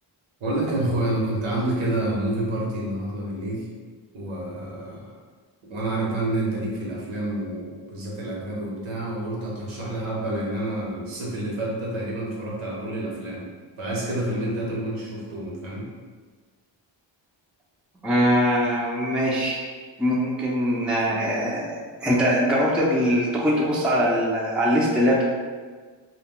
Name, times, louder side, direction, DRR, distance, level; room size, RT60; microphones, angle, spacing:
voice 1, 0.4-3.7 4.1-5.2 5.7-13.5 13.8-15.9, right 1 dB, 90° right, -4 dB, 0.9 m, -28 dB
voice 2, 18.0-19.7 20.0-25.2, equal, ahead, -4 dB, 0.4 m, -22 dB
2.2 x 2.1 x 3.6 m, 1.5 s
cardioid pair, 85°, 47 cm